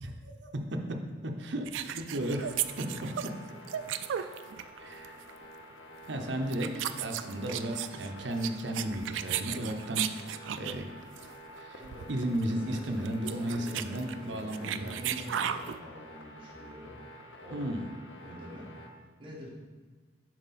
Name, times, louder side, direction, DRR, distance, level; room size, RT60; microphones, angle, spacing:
voice 1, 0.0-3.3 4.8-5.3 6.1-10.1 10.5-10.9 11.6-11.8 12.1-15.2 17.5-17.9, right 1 dB, 70° right, 3 dB, 0.7 m, -34 dB
sound 1, 1.6-4.8 5.0-5.3 6.0-6.2 6.5-10.8 11.2-11.3 11.6-11.7 11.8-12.1 12.4-12.5 12.9-15.8, right 10 dB, 85° right, 0.3 m, -35 dB
sound 2, 2.2-18.9, equal, 80° left, 0.8 m, -49 dB
voice 2, 2.8-3.1 3.4-3.5 3.9-4.2 11.8-12.1 12.4-17.0 17.4-17.7 18.2-19.5, equal, 30° right, -5 dB, 1.6 m, -46 dB
7.6 x 4.9 x 4.1 m, 1.3 s
head